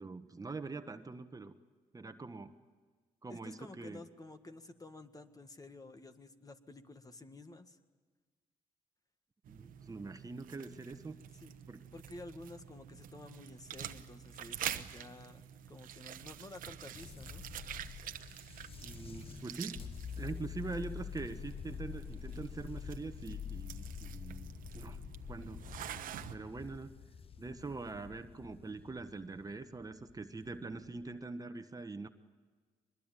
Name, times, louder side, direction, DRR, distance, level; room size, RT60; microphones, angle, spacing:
voice 1, 0.0-1.5 1.9-2.5 3.2-4.0 9.5-11.1 11.7-11.8 18.8-19.8 20.1-25.0 25.3-25.6 26.3-26.9 27.4-32.1, right 3 dB, 25° right, 9 dB, 1.2 m, -43 dB
voice 2, 3.3-7.8 11.4-11.6 11.9-17.4, left 2 dB, 25° left, 8 dB, 1.7 m, -51 dB
sound 1, 9.4-26.3, right 10 dB, 80° right, 1.1 m, -47 dB
sound 2, 16.9-31.1, left 7 dB, 40° left, 0.8 m, -47 dB
23.0 x 21.5 x 9.1 m, 1.5 s
cardioid pair, 75°, 14 cm